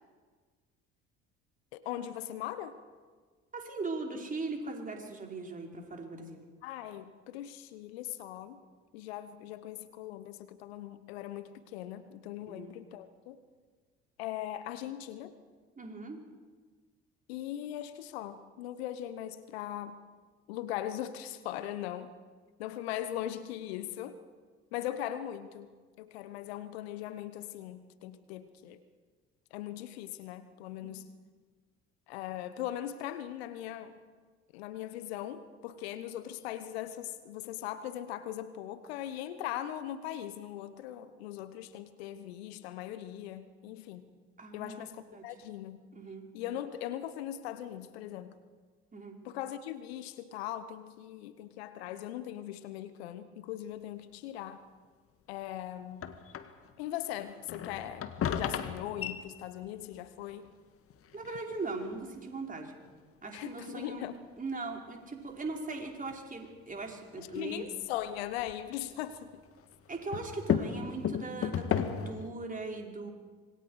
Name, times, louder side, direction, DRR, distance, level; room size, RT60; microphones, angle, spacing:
voice 1, 1.7-2.8 6.6-8.6 8.9-13.4 14.2-15.3 17.3-20.0 20.5-22.1 22.6-24.2 24.7-25.7 26.0-28.8 29.5-31.1 32.1-34.0 34.5-44.1 44.5-45.8 46.3-48.3 49.2-54.6 55.3-56.0 56.8-60.5 63.3-64.2 67.2-69.3, left 12 dB, 75° left, 13 dB, 1.1 m, -40 dB
voice 2, 3.5-6.4 12.5-12.7 15.8-16.2 44.4-44.8 45.1-45.2 45.9-46.2 48.9-49.1 61.1-62.7 63.2-64.1 64.4-67.7 69.9-73.1, right 3 dB, 25° right, 1 dB, 4.5 m, -39 dB
sound 1, 56.0-56.7 57.2-60.0 60.4-60.5 60.9-62.3 62.8-62.9 63.4-63.5 64.0-64.1 66.1-66.4 67.1-68.6 68.8-72.3, left 8 dB, 45° left, 1.6 m, -35 dB
26.0 x 22.0 x 4.8 m, 1.5 s
figure-of-eight pair, 55°, 32 cm